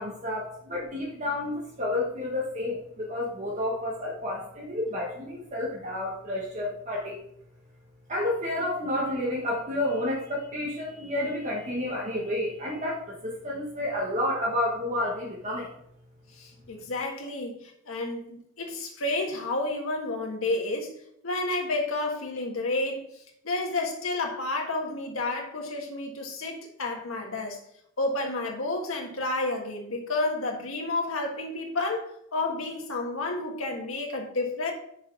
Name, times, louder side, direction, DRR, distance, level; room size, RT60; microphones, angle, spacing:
voice 1, 0.0-7.2 8.1-15.7, left 1 dB, 35° right, -3 dB, 1.4 m, -30 dB
voice 2, 16.3-21.0 21.2-27.6 28.0-34.7, left 2 dB, 90° left, 2 dB, 1.6 m, -31 dB
6.5 x 4.6 x 6.1 m, 0.72 s
head